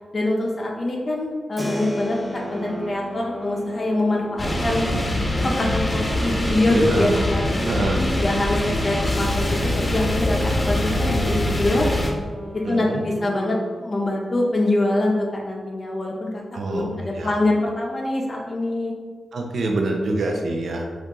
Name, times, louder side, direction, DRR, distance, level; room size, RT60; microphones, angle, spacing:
voice 1, 0.1-4.8 5.4-7.4 8.0-9.6 9.9-11.9 12.5-16.4 16.7-18.9, left 2 dB, 45° left, -1 dB, 0.5 m, -24 dB
Keyboard (musical), 1.6-12.2, equal, 5° right, 0.5 m, -39 dB
sound 1, 2.2-7.9 8.5-13.9, equal, 45° right, 1.0 m, -35 dB
sound 2, 4.4-12.1, left 1 dB, 20° left, 0.9 m, -24 dB
voice 2, 6.7-7.2 7.7-8.0 12.6-13.0 16.5-17.3 19.3-20.9, right 2 dB, 75° right, 2 dB, 0.4 m, -25 dB
2.8 x 2.4 x 3.6 m, 1.5 s
cardioid pair, 50°, 0 cm